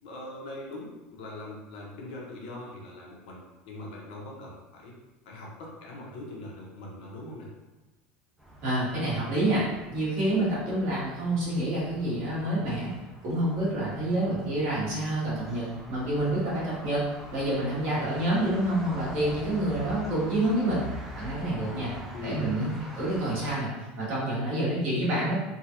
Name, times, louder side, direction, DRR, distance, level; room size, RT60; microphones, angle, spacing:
voice 1, 0.0-3.4 3.6-4.9 5.2-7.5 22.1-22.5, left 1 dB, 75° left, -3 dB, 0.9 m, -41 dB
sound 1, 8.4-23.5, equal, ahead, 0.5 m, -45 dB
voice 2, 8.6-9.6 9.9-12.9 13.2-17.0 17.3-20.8 21.1-21.9 22.2-23.7 24.0-25.4, right 1 dB, 45° right, -8 dB, 1.5 m, -28 dB
3.6 x 2.3 x 2.9 m, 1.1 s
cardioid pair, 175°, 4 cm